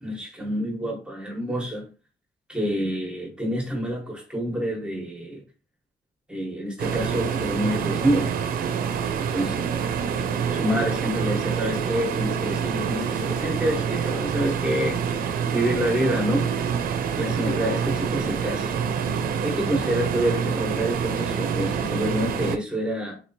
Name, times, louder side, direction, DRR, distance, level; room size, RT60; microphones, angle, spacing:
voice 1, 0.0-1.9 2.5-5.4 6.3-8.3 9.3-9.6 10.5-15.1 15.5-16.5 17.1-18.7 19.4-23.2, equal, 5° right, 1.2 m, -27 dB
sound 1, 6.8-22.6, right 7 dB, 90° right, 0.5 m, -27 dB
3.9 x 3.0 x 2.7 m
cardioid pair, 115°, 15 cm